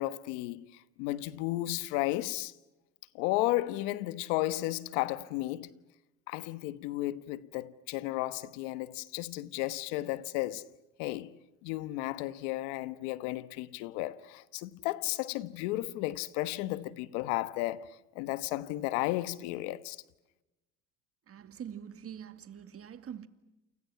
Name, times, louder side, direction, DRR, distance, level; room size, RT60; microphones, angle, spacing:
voice 1, 0.0-2.5 3.1-5.7 6.3-10.6 11.0-11.4 11.6-20.0, left 17 dB, 85° left, 1.4 m, -34 dB
voice 2, 21.3-23.3, right 8 dB, 40° right, 2.3 m, -44 dB
29.5 x 29.0 x 5.9 m
supercardioid pair, 90°, 35 cm